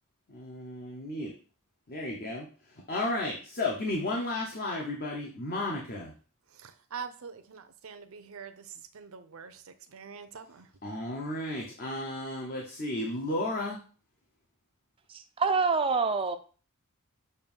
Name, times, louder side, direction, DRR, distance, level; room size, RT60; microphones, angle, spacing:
voice 1, 0.3-1.3 1.9-2.5 2.9-6.1 10.8-13.8, left 2 dB, 40° left, 0.9 m, -33 dB
voice 2, 6.5-10.7, right 6 dB, 65° right, 0.6 m, -44 dB
voice 3, 15.1-16.4, right 4 dB, 25° right, 0.4 m, -26 dB
6.7 x 2.6 x 5.4 m
head